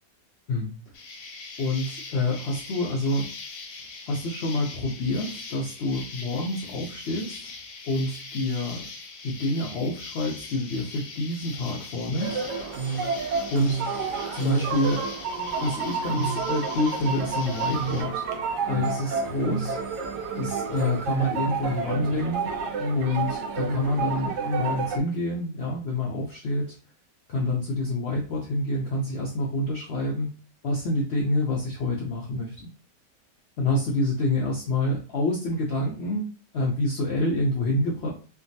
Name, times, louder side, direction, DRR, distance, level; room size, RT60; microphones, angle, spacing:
Insect, 0.9-18.0, left 4 dB, 65° left, 0.9 m, -41 dB
voice 1, 1.6-3.3 4.1-7.5 7.9-8.8 9.2-12.4 13.5-13.8 14.3-15.1 15.6-18.2 18.7-19.8 20.4-22.4 23.0-26.8 27.3-30.3 30.6-32.7 33.6-36.3 36.5-38.1, left 2 dB, 80° left, -3 dB, 0.5 m, -27 dB
sound 1, 12.2-25.0, right 4 dB, 80° right, 1.2 m, -29 dB
3.4 x 2.2 x 2.6 m, 0.37 s
omnidirectional pair, 1.8 m